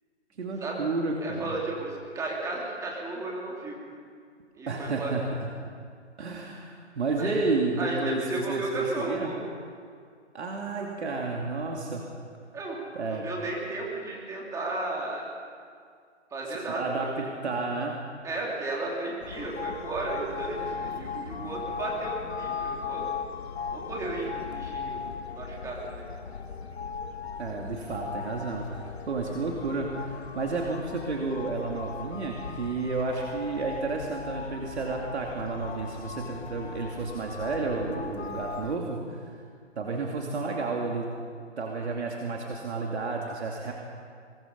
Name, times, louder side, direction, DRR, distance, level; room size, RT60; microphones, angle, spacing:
voice 1, 0.4-1.5 4.7-5.3 6.2-9.3 10.3-12.0 12.9-13.3 16.5-18.0 27.4-39.3 39.8-41.1 41.6-43.7, right 3 dB, 60° right, 0 dB, 2.8 m, -31 dB
voice 2, 1.2-3.9 4.5-5.1 7.2-7.4 7.8-9.4 12.5-15.3 16.3-16.8 17.2-17.3 18.2-23.1 23.7-26.0, right 2 dB, 10° right, -3 dB, 2.8 m, -34 dB
sound 1, 19.2-38.8, left 6 dB, 55° left, 1.7 m, -38 dB
23.0 x 21.5 x 5.4 m, 2.2 s
figure-of-eight pair, 145°, 37 cm